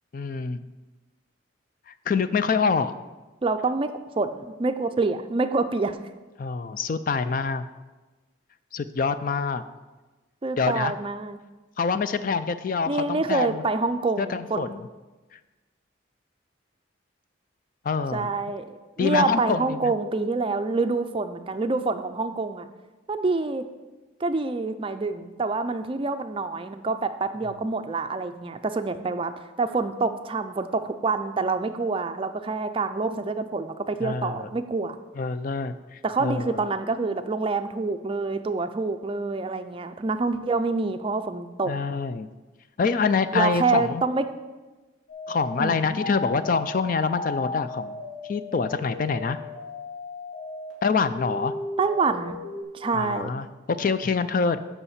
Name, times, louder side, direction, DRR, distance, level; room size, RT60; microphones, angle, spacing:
voice 1, 0.1-0.6 1.9-2.9 6.4-7.6 8.7-9.6 10.6-10.9 11.8-13.6 14.2-14.9 15.3-15.4 17.8-18.3 19.0-19.9 34.0-34.5 35.2-36.6 41.7-42.3 42.8-44.0 45.3-48.0 48.2-49.4 50.8-51.5 52.9-54.6, left 5 dB, 45° left, 12 dB, 0.3 m, -26 dB
voice 2, 3.4-6.0 10.4-11.4 12.9-14.7 18.1-22.7 23.1-23.6 24.2-29.3 29.6-35.0 36.0-41.7 43.3-44.2 45.6-45.8 51.8-52.4 52.7-53.3, right 3 dB, 25° right, 9 dB, 0.4 m, -26 dB
sound 1, 45.1-50.7 51.2-52.6, left 2 dB, 75° left, 2.5 m, -36 dB
6.9 x 5.7 x 7.2 m, 1.2 s
head